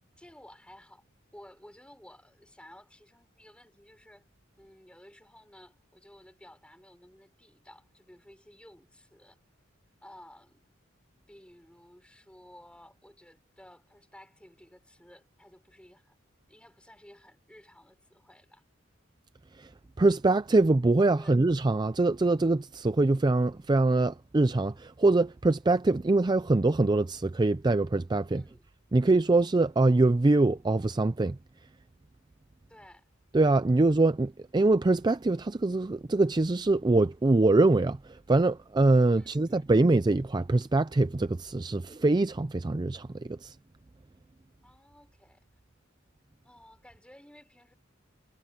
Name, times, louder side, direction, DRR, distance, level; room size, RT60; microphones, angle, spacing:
voice 1, 0.2-1.0 1.3-4.3 4.6-9.4 10.0-10.8 11.3-16.2 16.5-18.6 21.1-21.4 28.3-28.7 32.7-33.1 39.2-39.7 44.6-45.5 46.4-47.7, left 1 dB, 5° left, 6.4 m, -55 dB
voice 2, 20.0-28.4 28.9-31.4 33.3-43.6, right 2 dB, 20° right, 0.4 m, -24 dB
head